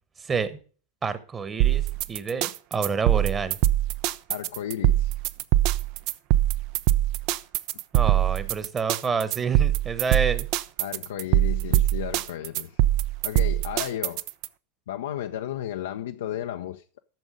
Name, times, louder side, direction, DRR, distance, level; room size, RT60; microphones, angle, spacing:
voice 1, 0.2-0.6 1.0-3.6 7.9-10.5, right 5 dB, 20° right, 1.2 m, -28 dB
sound 1, 1.6-14.5, right 14 dB, 45° right, 0.5 m, -23 dB
voice 2, 4.3-5.1 10.8-12.8 13.2-14.2 14.9-17.0, left 11 dB, 60° left, 0.6 m, -33 dB
12.0 x 7.1 x 5.1 m
figure-of-eight pair, 90°, 0 cm